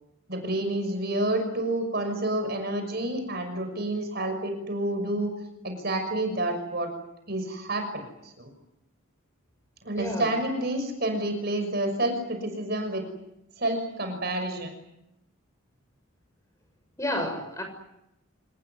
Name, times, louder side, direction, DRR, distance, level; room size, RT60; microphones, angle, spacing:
voice 1, 0.3-5.3 5.6-6.9 7.3-8.5 9.8-13.0 13.6-14.7, right 1 dB, 50° right, 6 dB, 6.1 m, -29 dB
voice 2, 10.0-10.3 17.0-17.6, left 1 dB, 15° left, 5 dB, 6.6 m, -30 dB
27.0 x 20.5 x 9.6 m, 0.85 s
head